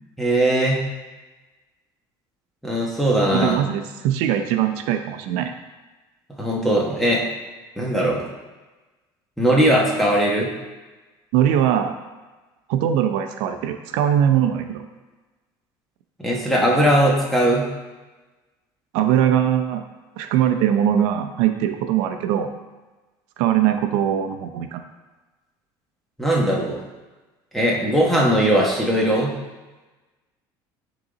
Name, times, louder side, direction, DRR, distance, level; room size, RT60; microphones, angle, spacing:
voice 1, 0.2-0.8 2.6-3.6 6.4-7.2 7.8-8.2 9.4-10.5 16.2-17.7 26.2-26.8 27.5-29.3, right 1 dB, ahead, -3 dB, 1.1 m, -19 dB
voice 2, 3.3-5.5 11.3-12.0 12.7-14.8 18.9-19.8 20.2-22.5 23.4-24.8, right 10 dB, 85° right, 7 dB, 0.6 m, -21 dB
9.9 x 3.8 x 4.0 m, 1.2 s
cardioid pair, 170°, 9 cm